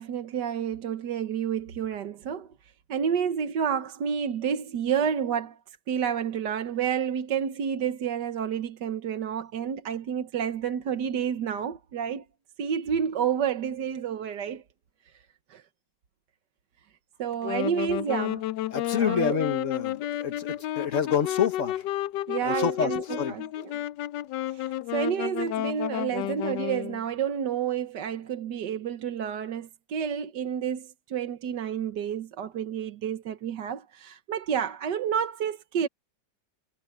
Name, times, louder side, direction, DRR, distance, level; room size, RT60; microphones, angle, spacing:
voice 1, 0.0-5.6 5.9-12.2 12.6-14.6 15.1-15.2 15.5-15.6 17.2-18.4 18.9-19.4 22.3-23.8 24.5-35.9, right 8 dB, 70° right, 1.7 m, -30 dB
Wind instrument woodwind instrument, 17.3-27.0, left 14 dB, 75° left, 1.2 m, -31 dB
voice 2, 18.7-20.5 20.8-21.8 22.4-22.9 23.2-23.4, left 7 dB, 45° left, 1.6 m, -27 dB
omnidirectional pair, 1.9 m